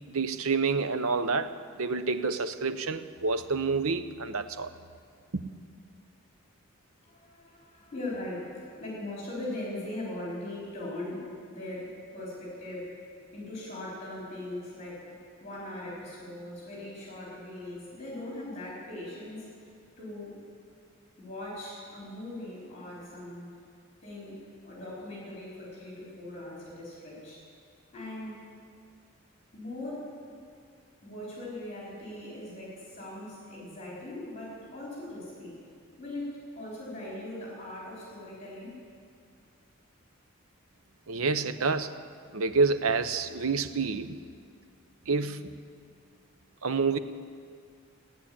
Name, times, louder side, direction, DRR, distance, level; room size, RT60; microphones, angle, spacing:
voice 1, 0.1-4.7 5.3-5.4 41.1-41.9 42.3-44.2 45.1-45.5 46.6-47.0, right 4 dB, 75° right, 11 dB, 0.7 m, -28 dB
voice 2, 7.0-13.0 13.3-19.5 20.0-20.4 21.2-23.5 24.0-27.4 27.9-28.4 29.5-30.1 31.0-35.6 36.0-38.8, left 1 dB, 30° left, -5 dB, 4.2 m, -40 dB
16.0 x 10.0 x 8.6 m, 2.2 s
head